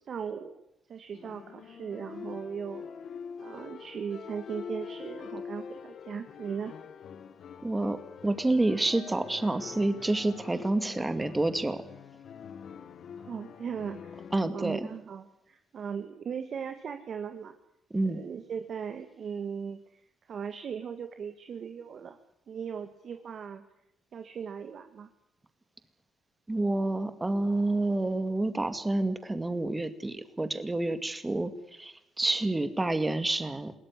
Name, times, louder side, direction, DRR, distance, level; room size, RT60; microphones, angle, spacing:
voice 1, 0.1-0.6 0.9-2.8 3.4-6.7 13.2-14.3 14.5-17.5 18.0-22.2 22.5-23.6 24.1-25.1, right 7 dB, 55° right, 8 dB, 1.8 m, -38 dB
sound 1, 1.1-14.5, left 6 dB, 65° left, 1.5 m, -45 dB
voice 2, 7.6-11.8 14.3-14.9 17.9-18.2 26.5-33.7, right 2 dB, 15° right, 10 dB, 2.2 m, -29 dB
21.5 x 17.0 x 9.7 m, 0.82 s
cardioid pair, 90°, 0 cm